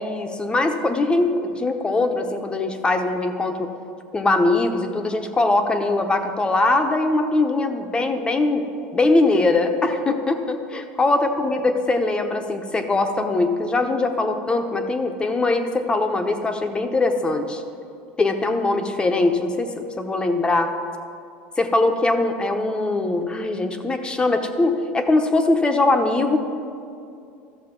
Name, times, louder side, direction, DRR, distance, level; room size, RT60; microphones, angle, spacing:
voice 1, 0.0-3.7 4.1-8.6 8.9-17.6 18.2-20.7 21.6-26.4, left 2 dB, 15° left, 6 dB, 0.9 m, -21 dB
13.5 x 6.6 x 5.2 m, 2.5 s
supercardioid pair, 115°, 6 cm